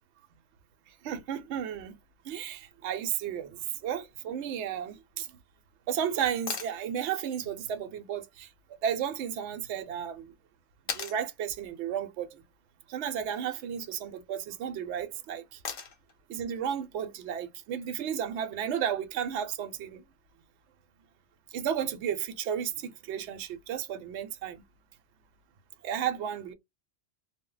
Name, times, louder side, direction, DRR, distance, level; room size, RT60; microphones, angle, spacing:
voice 1, 1.0-2.0 2.2-5.3 5.9-8.5 8.8-10.3 10.9-12.4 12.9-15.6 16.3-20.0 21.5-24.6 25.8-26.5, right 9 dB, 70° right, 0.8 m, -33 dB
sound 1, 6.5-6.8 9.0-9.1 10.9-11.2 13.2-13.6 15.6-16.1 18.2-18.3, left 6 dB, 55° left, 0.7 m, -37 dB
2.1 x 2.0 x 3.7 m
omnidirectional pair, 1.3 m